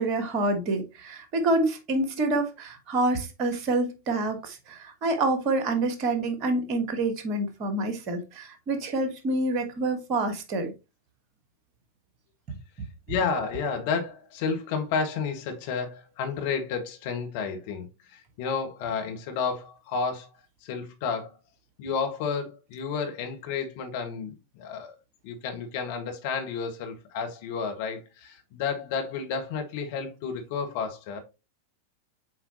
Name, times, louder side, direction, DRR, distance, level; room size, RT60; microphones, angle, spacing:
voice 1, 0.0-10.7, right 2 dB, 40° right, 1.5 m, -27 dB
voice 2, 13.1-20.3 20.6-21.3 21.8-24.9 25.2-31.2, left 5 dB, 50° left, 1.6 m, -31 dB
7.8 x 4.4 x 2.9 m
figure-of-eight pair, 90°, 0 cm